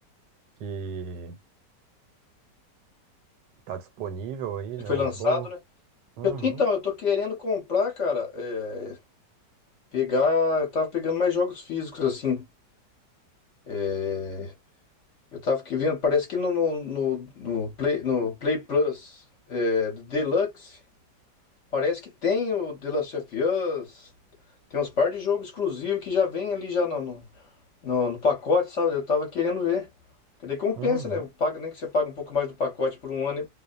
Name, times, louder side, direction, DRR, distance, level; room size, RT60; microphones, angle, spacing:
voice 1, 0.6-1.4 3.7-5.5 6.2-6.6 30.8-31.2, right 7 dB, 80° right, 1.3 m, -35 dB
voice 2, 4.9-5.6 6.2-9.0 9.9-12.4 13.7-14.5 15.3-19.2 19.5-20.8 21.7-24.1 24.7-27.2 27.8-29.9 30.4-33.5, left 5 dB, 50° left, 1.0 m, -26 dB
2.8 x 2.0 x 2.4 m
omnidirectional pair, 1.9 m